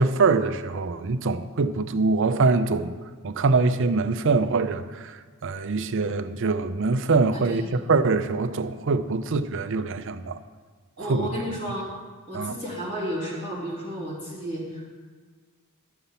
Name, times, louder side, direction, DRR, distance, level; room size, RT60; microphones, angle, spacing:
voice 1, 0.0-2.9 3.2-10.4 11.0-11.3 12.3-12.6, right 3 dB, 60° right, 0.6 m, -24 dB
voice 2, 7.3-7.7 11.0-11.9 12.3-15.0, equal, 35° left, 3.4 m, -32 dB
12.5 x 6.8 x 5.8 m
head